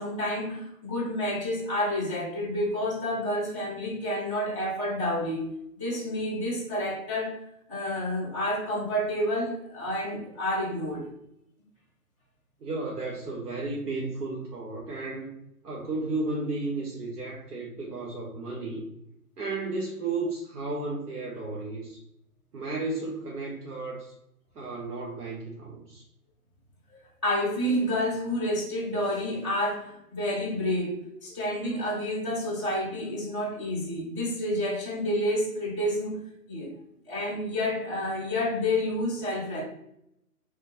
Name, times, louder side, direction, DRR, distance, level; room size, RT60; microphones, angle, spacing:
voice 1, 0.0-7.4 7.7-11.1 27.2-30.9 31.2-36.2 36.5-36.7 37.1-39.6, left 1 dB, 20° right, -8 dB, 0.4 m, -29 dB
voice 2, 12.6-15.4 15.6-18.9 19.4-22.0 22.5-24.1 24.5-26.0, right 3 dB, 85° right, -3 dB, 1.0 m, -33 dB
3.2 x 2.8 x 3.2 m, 0.81 s
hypercardioid pair, 150°, 46 cm